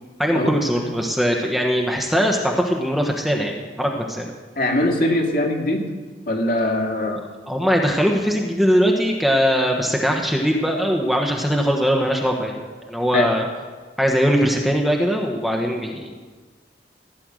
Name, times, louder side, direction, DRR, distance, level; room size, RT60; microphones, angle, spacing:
voice 1, 0.2-4.3 7.0-13.5 14.0-16.1, equal, ahead, 1 dB, 1.2 m, -21 dB
voice 2, 4.6-5.8 6.3-7.2 13.1-13.3, left 1 dB, 50° left, 2 dB, 2.1 m, -21 dB
16.0 x 9.9 x 6.3 m, 1.4 s
head